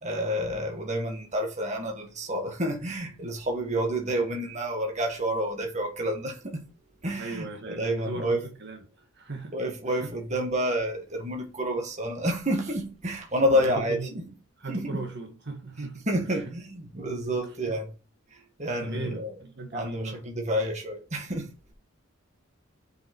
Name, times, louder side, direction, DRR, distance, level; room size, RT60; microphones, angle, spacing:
voice 1, 0.0-6.7 7.0-8.4 9.5-14.2 14.7-15.0 16.1-17.9 18.3-19.3 19.7-21.5, equal, 35° right, 1.7 m, -29 dB
voice 2, 7.2-8.8 9.1-9.6 9.9-10.1 13.5-14.2 14.6-16.1 16.4-16.5 18.8-20.2, right 3 dB, 55° right, 1.6 m, -38 dB
7.4 x 5.8 x 4.6 m
head